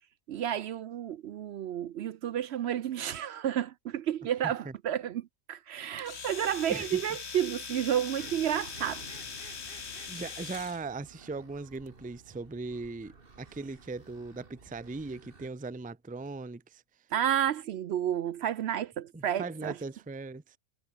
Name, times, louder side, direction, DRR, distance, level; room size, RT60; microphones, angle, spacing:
voice 1, 0.3-9.0 17.1-19.8, right 10 dB, 65° right, 0.7 m, -31 dB
voice 2, 4.4-4.7 6.7-7.0 9.7-16.8 19.1-20.6, right 3 dB, 10° right, 0.5 m, -39 dB
Domestic sounds home sounds, 6.0-10.8, left 6 dB, 50° left, 1.7 m, -41 dB
sound 1, 8.2-15.5, right 4 dB, 40° right, 2.1 m, -53 dB
omnidirectional pair, 1.5 m